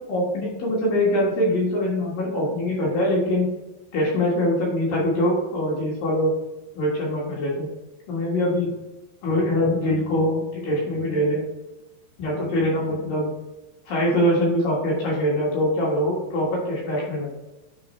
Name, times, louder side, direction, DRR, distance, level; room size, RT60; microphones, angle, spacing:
voice 1, 0.1-3.5 3.9-6.3 6.8-7.7 8.1-8.7 9.2-11.4 12.2-13.3 13.9-17.3, left 1 dB, 65° left, -5 dB, 3.0 m, -23 dB
8.6 x 3.9 x 4.2 m, 1.0 s
omnidirectional pair, 4.8 m